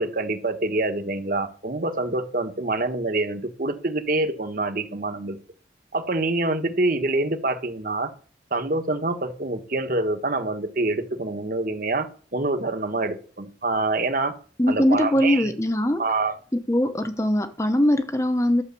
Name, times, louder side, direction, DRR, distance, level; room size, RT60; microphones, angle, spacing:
voice 1, 0.0-5.4 5.9-8.1 8.5-14.3 14.7-15.5 16.0-16.4, right 2 dB, 50° right, 1.2 m, -26 dB
voice 2, 14.6-16.0 16.7-18.6, left 1 dB, 15° left, 0.7 m, -21 dB
12.0 x 6.3 x 6.9 m
head